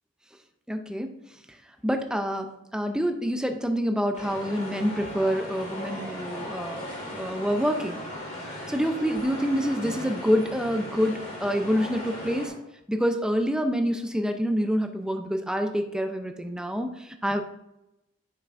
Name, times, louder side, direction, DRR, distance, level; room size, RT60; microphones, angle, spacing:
voice 1, 0.7-1.1 1.8-6.8 7.1-8.0 8.7-12.5 12.9-17.4, equal, 5° right, 5 dB, 0.5 m, -27 dB
sound 1, 4.1-12.5, left 1 dB, 35° left, 2.2 m, -37 dB
9.7 x 5.8 x 2.5 m, 0.89 s
head